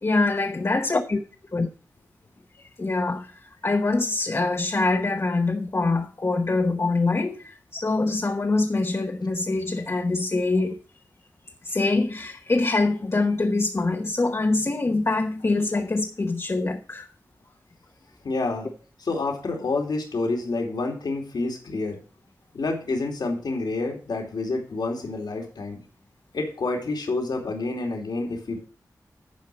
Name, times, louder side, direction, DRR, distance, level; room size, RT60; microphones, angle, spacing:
voice 1, 0.0-1.2 1.5-1.7 2.6-10.8 11.6-17.1, left 3 dB, 40° left, 1.0 m, -24 dB
voice 2, 18.2-18.7 19.0-22.0 22.5-25.8 26.3-28.7, left 3 dB, 80° left, 2.5 m, -28 dB
10.0 x 4.8 x 7.5 m
wide cardioid pair, 65°, 7 cm